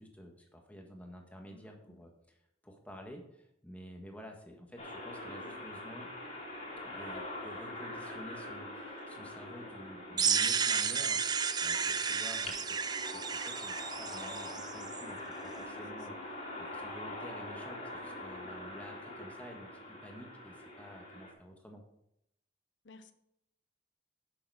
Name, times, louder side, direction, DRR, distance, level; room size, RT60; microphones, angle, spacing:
voice 1, 0.0-6.1 6.8-21.8, equal, 10° left, 1.6 m, -51 dB
voice 2, 1.5-2.0 9.2-9.3 15.5-15.8 16.5-16.7 18.4-18.8 22.8-23.1, left 2 dB, 75° left, 1.0 m, -58 dB
sound 1, 4.8-21.3, left 1 dB, 40° left, 2.8 m, -44 dB
sound 2, 10.2-15.0, right 6 dB, 20° right, 0.4 m, -32 dB
10.0 x 6.9 x 5.0 m
head